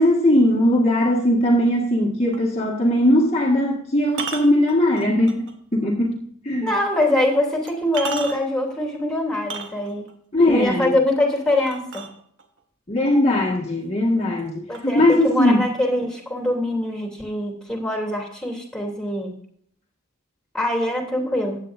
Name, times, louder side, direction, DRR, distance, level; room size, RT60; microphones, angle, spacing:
voice 1, 0.0-5.5 5.7-6.2 6.4-6.7 10.3-10.9 12.9-15.7, left 1 dB, 30° left, -3 dB, 1.8 m, -19 dB
sound 1, 2.3-2.5 4.1-5.5 6.0-6.1 7.0-7.1 7.7-8.6 9.3-10.1 11.7-12.6 13.5-13.6 14.0-14.5 14.7-15.7, right 5 dB, 55° right, 1.7 m, -34 dB
voice 2, 6.6-10.1 10.4-12.1 14.7-19.3 20.5-21.6, left 1 dB, 5° left, 0 dB, 3.0 m, -23 dB
15.5 x 9.6 x 2.6 m, 0.64 s
head